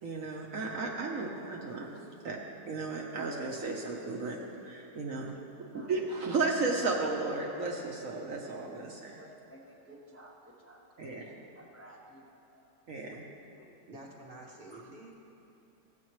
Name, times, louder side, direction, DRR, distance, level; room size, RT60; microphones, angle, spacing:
voice 1, 0.0-1.9 2.2-2.4 2.7-5.3 5.7-9.2 11.0-11.2 12.9-13.2, right 3 dB, 60° right, -1 dB, 1.2 m, -34 dB
voice 2, 9.2-12.6 13.6-13.7, right 1 dB, 10° left, -4 dB, 0.8 m, -53 dB
voice 3, 13.9-15.1, right 2 dB, 35° right, -1 dB, 1.1 m, -48 dB
16.0 x 7.6 x 3.1 m, 2.8 s
omnidirectional pair, 1.8 m